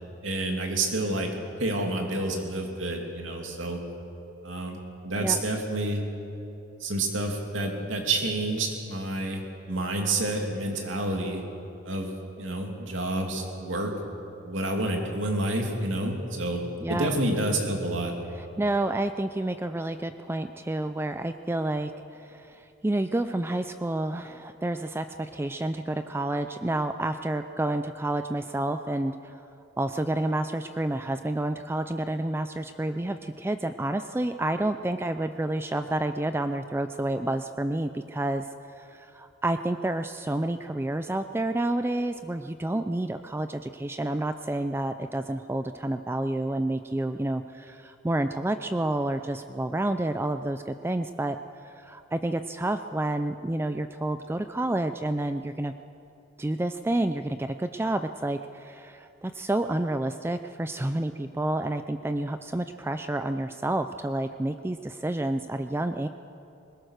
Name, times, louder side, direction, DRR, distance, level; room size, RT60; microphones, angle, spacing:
voice 1, 0.2-1.3 1.6-3.8 4.4-6.0 6.8-9.4 9.7-11.4 11.8-13.9 14.4-16.6 16.9-18.1, right 2 dB, 85° right, 2 dB, 2.8 m, -29 dB
voice 2, 16.8-17.1 18.4-29.4 29.8-38.5 38.8-51.4 51.6-55.7 56.4-66.1, right 1 dB, 10° right, 9 dB, 0.4 m, -29 dB
21.0 x 20.0 x 6.5 m, 2.9 s
head